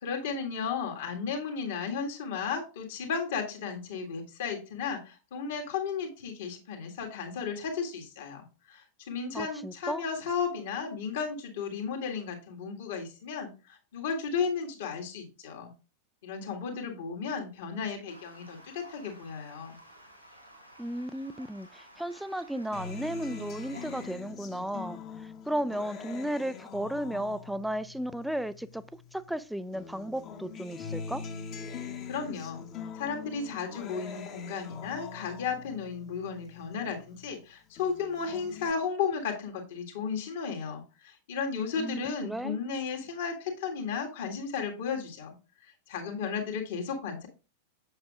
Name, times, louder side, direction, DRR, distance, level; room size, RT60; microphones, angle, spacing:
voice 1, 0.0-15.7 16.2-19.8 31.7-32.7 32.9-45.3 45.9-47.3, left 6 dB, 55° left, 1.8 m, -34 dB
voice 2, 9.3-10.0 20.8-28.8 29.1-31.2 41.8-42.6, right 1 dB, ahead, 0.4 m, -34 dB
Stream, 18.1-24.1, right 1 dB, 90° right, 4.1 m, -54 dB
Acoustic guitar, 22.7-29.4 29.7-37.4 37.8-38.7, left 6 dB, 35° left, 1.1 m, -43 dB
7.7 x 7.0 x 2.4 m
figure-of-eight pair, 90°, 0 cm